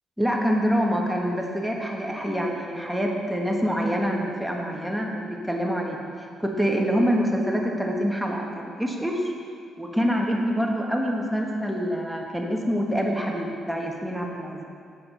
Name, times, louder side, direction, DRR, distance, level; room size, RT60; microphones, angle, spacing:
voice 1, 0.2-6.0 6.4-9.2 9.8-14.6, equal, ahead, 0 dB, 1.4 m, -26 dB
7.7 x 7.6 x 5.5 m, 2.3 s
cardioid pair, 90°, 0 cm